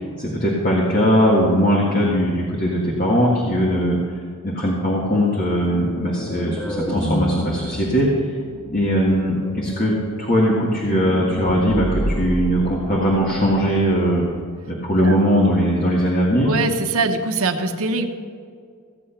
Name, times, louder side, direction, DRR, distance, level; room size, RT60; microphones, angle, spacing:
voice 1, 0.2-4.0 4.4-6.6 6.9-8.1 8.7-14.2 14.7-16.5, equal, 40° left, -3 dB, 1.9 m, -19 dB
sound 1, 5.6-14.4, equal, 10° left, 1.2 m, -30 dB
voice 2, 16.4-18.1, right 3 dB, 85° right, 6 dB, 1.1 m, -22 dB
15.5 x 8.6 x 5.8 m, 2.2 s
head